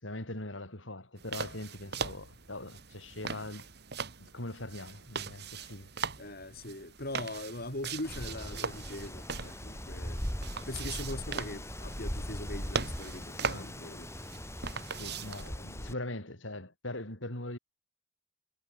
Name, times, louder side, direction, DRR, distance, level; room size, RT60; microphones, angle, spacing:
voice 1, 0.0-3.7 4.2-5.9 13.4-13.8 14.9-17.6, left 1 dB, 80° left, 7.9 m, -41 dB
sound 1, 1.2-15.5, right 5 dB, 60° right, 2.1 m, -40 dB
voice 2, 6.2-10.2 10.7-14.1 15.4-15.9, left 2 dB, 50° left, 4.6 m, -41 dB
Wind, 8.0-15.9, equal, 15° left, 5.1 m, -40 dB
head